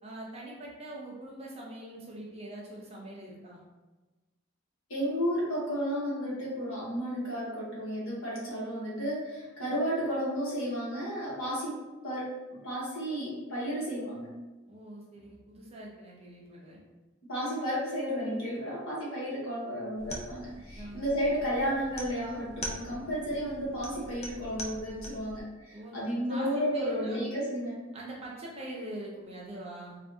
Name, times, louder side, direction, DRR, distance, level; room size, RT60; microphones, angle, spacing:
voice 1, 0.0-3.6 14.6-16.8 20.7-21.0 25.7-26.0 26.3-26.5 26.7-27.2 27.9-30.0, right 1 dB, 30° right, -3 dB, 0.5 m, -43 dB
voice 2, 4.9-11.8 12.0-14.4 17.3-27.9, equal, 70° left, -6 dB, 1.2 m, -32 dB
sound 1, 20.0-25.4, equal, 30° left, 0.4 m, -43 dB
3.3 x 2.5 x 2.6 m, 1.2 s
head